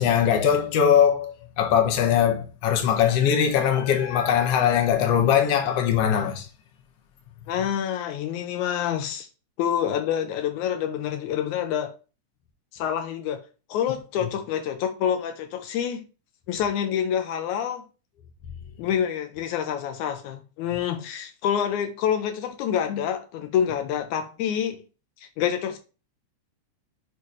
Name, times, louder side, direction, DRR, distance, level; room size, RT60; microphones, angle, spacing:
voice 1, 0.0-6.5 14.2-14.3, left 8 dB, 65° left, 1.9 m, -21 dB
voice 2, 7.5-9.3 9.6-11.9 12.7-13.4 13.7-16.1 16.5-17.8 18.8-24.8 25.2-25.8, left 9 dB, 85° left, 2.1 m, -27 dB
6.9 x 3.1 x 5.4 m
omnidirectional pair, 3.4 m